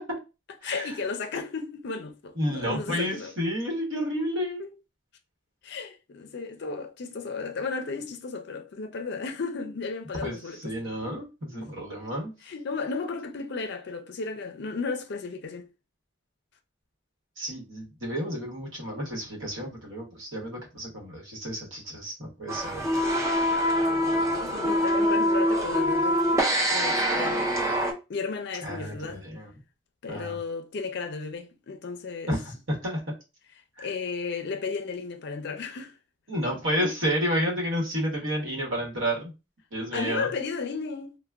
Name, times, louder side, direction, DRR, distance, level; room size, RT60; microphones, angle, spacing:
voice 1, 0.6-3.3 4.6-4.7 5.6-10.7 11.0-11.3 11.5-11.6 12.4-15.7 24.4-27.6 28.1-29.2 30.0-32.3 33.8-35.9 39.9-41.2, left 4 dB, 55° left, 0.4 m, -34 dB
voice 2, 2.4-4.6 10.2-12.3 17.4-22.8 28.6-29.5 30.1-30.4 32.3-33.0 33.8-33.9 36.3-39.3 39.7-40.3, equal, 75° right, 1.0 m, -31 dB
sound 1, 22.5-27.9, equal, 15° right, 0.4 m, -24 dB
3.3 x 2.1 x 2.3 m
head